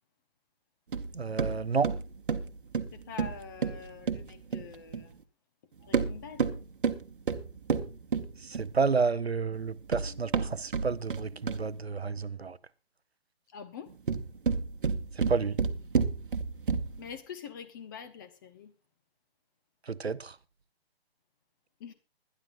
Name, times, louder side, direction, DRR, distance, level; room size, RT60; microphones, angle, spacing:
sound 1, 0.9-5.1 5.8-8.8 9.6-11.8 13.9-17.1, right 5 dB, 55° right, 1.2 m, -31 dB
voice 1, 1.1-1.9 8.6-12.6 15.2-15.6 19.9-20.3, right 5 dB, 80° right, 0.8 m, -30 dB
voice 2, 2.9-5.2 5.9-6.5 13.5-14.0 17.0-18.7 21.8-21.9, left 6 dB, 20° left, 0.9 m, -45 dB
21.0 x 11.0 x 2.6 m
figure-of-eight pair, 135°, 31 cm